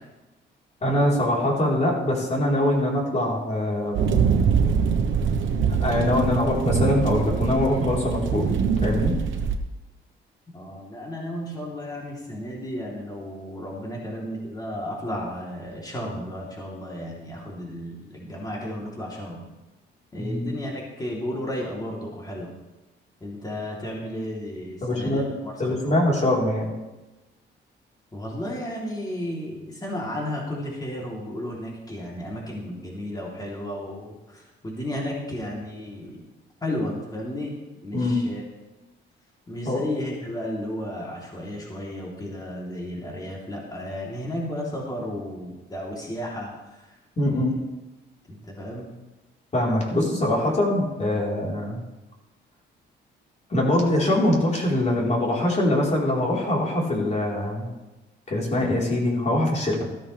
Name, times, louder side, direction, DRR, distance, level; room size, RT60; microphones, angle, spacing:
voice 1, 0.8-4.1 5.8-8.5 8.8-9.1 20.2-20.5 24.8-25.3 25.6-26.7 37.9-38.2 39.6-39.8 47.2-47.5 49.5-51.8 53.5-57.7 58.3-59.9, left 1 dB, 35° left, -3 dB, 4.1 m, -23 dB
sound 1, 3.9-9.6, right 6 dB, 75° right, 1.1 m, -23 dB
voice 2, 10.5-19.4 20.1-22.5 23.2-26.0 28.1-36.2 36.6-37.6 37.8-38.4 39.5-46.9 47.2-47.5 48.3-48.9, left 1 dB, 20° left, -3 dB, 3.4 m, -33 dB
14.0 x 13.0 x 3.4 m, 1.1 s
cardioid pair, 90°, 20 cm